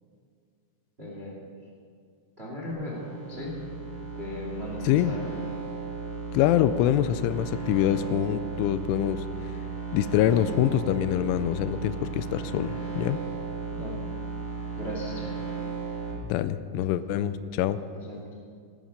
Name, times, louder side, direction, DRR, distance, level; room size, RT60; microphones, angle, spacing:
voice 1, 1.0-1.4 2.4-3.6 4.1-5.2 13.7-14.0 14.7-15.3 17.9-18.3, left 1 dB, 80° right, -2 dB, 0.5 m, -37 dB
sound 1, 2.7-16.1, right 4 dB, 70° left, 5.3 m, -35 dB
voice 2, 6.3-9.6 9.9-13.2 16.2-17.8, left 12 dB, 85° left, 13 dB, 2.9 m, -25 dB
15.5 x 13.5 x 5.2 m, 2.1 s
omnidirectional pair, 5.7 m